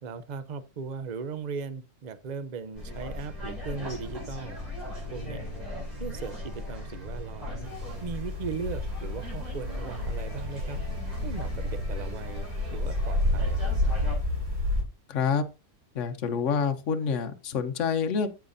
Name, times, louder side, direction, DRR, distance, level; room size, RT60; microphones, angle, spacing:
voice 1, 0.0-4.6 5.1-5.4 6.0-7.7 8.0-10.8 11.2-13.8, right 5 dB, 45° right, 0.6 m, -38 dB
sound 1, 2.7-14.2, left 1 dB, 25° right, 4.0 m, -38 dB
sound 2, 7.6-14.8, left 1 dB, 90° right, 3.7 m, -30 dB
voice 2, 15.1-15.4 15.9-18.3, left 6 dB, 55° left, 1.3 m, -27 dB
14.0 x 5.9 x 2.6 m
omnidirectional pair, 1.6 m